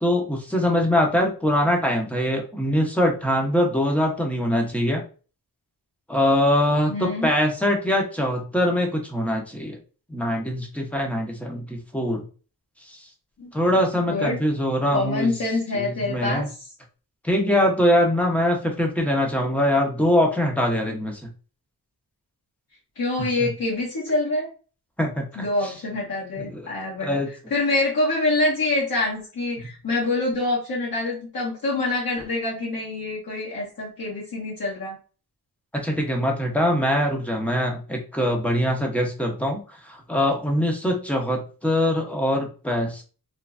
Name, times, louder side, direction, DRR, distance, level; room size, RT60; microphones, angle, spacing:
voice 1, 0.0-5.0 6.1-9.8 10.1-12.2 12.9-13.0 13.5-15.3 15.7-16.5 17.2-21.2 23.4-23.5 25.0-25.7 26.4-26.7 27.0-27.3 35.7-43.0, left 1 dB, 5° left, 1 dB, 0.8 m, -23 dB
voice 2, 6.9-7.3 13.4-13.5 13.9-14.4 14.9-16.5 22.9-24.5 25.3-27.2 27.5-35.0, left 2 dB, 60° left, -7 dB, 1.6 m, -26 dB
3.3 x 3.1 x 2.5 m, 0.36 s
wide cardioid pair, 160°, 39 cm